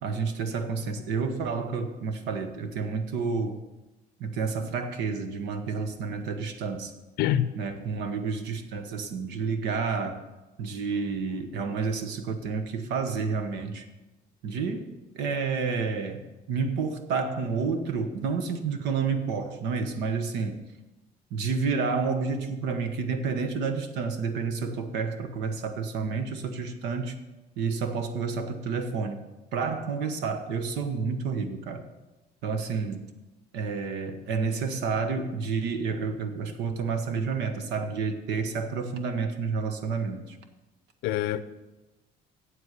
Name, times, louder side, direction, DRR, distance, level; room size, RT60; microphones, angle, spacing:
voice 1, 0.0-3.6 4.2-6.9 7.6-10.2 10.6-13.9 14.4-20.6 21.3-27.2 27.6-31.8 32.4-33.1 33.5-40.4, right 5 dB, 90° right, 1.2 m, -30 dB
voice 2, 7.2-7.5 41.0-41.4, left 12 dB, 90° left, 0.6 m, -25 dB
8.1 x 7.8 x 8.1 m
cardioid pair, 110°, 17 cm